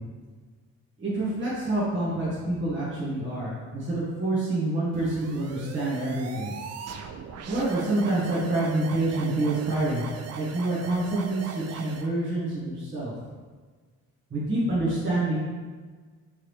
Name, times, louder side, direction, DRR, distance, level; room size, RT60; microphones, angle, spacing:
voice 1, 1.0-6.5 7.5-10.0 10.3-13.1 14.3-15.4, right 2 dB, 40° right, -8 dB, 1.3 m, -27 dB
sound 1, 4.9-12.1, right 6 dB, 60° right, 0.4 m, -40 dB
3.6 x 3.2 x 3.2 m, 1.4 s
cardioid pair, 90°, 30 cm